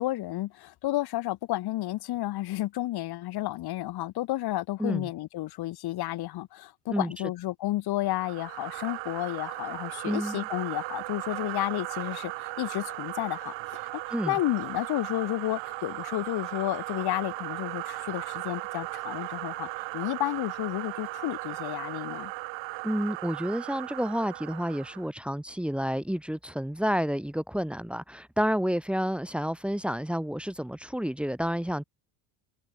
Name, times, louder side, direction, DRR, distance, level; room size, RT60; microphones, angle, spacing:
voice 1, 0.0-13.5 14.3-19.7 19.9-22.3, left 16 dB, 55° left, 2.3 m, -31 dB
sound 1, 8.1-25.1, right 22 dB, 70° right, 3.5 m, -37 dB
voice 2, 10.0-10.5 14.1-14.4 22.8-31.8, equal, ahead, 2.2 m, -30 dB
cardioid pair, 125°, 45 cm